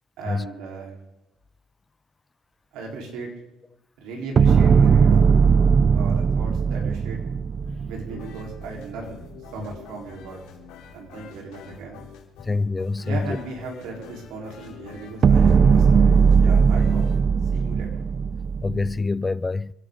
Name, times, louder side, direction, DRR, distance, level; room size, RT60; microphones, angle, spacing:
voice 1, 0.2-1.0 2.7-3.3 4.0-5.3 5.9-7.3 7.9-9.2 9.5-10.4 10.9-12.1 13.0-17.0 17.5-17.9, right 3 dB, 80° right, 4.2 m, -37 dB
sound 1, 4.4-8.6 15.2-19.0, right 6 dB, 40° right, 0.5 m, -18 dB
sound 2, 8.1-17.2, left 7 dB, 85° left, 3.6 m, -46 dB
voice 2, 12.4-13.4 18.6-19.7, left 3 dB, 20° left, 0.5 m, -26 dB
28.5 x 11.5 x 3.9 m
cardioid pair, 105°, 0 cm